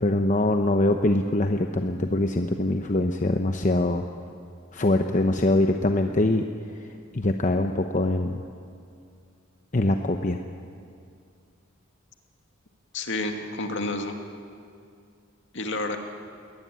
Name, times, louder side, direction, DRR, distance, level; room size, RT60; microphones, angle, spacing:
voice 1, 0.0-4.0 4.7-6.4 7.1-8.4 9.7-10.4, left 1 dB, 35° left, 5 dB, 0.9 m, -23 dB
voice 2, 12.9-14.2 15.5-16.0, left 2 dB, 60° left, 4 dB, 2.3 m, -29 dB
21.5 x 18.5 x 9.4 m, 2.4 s
head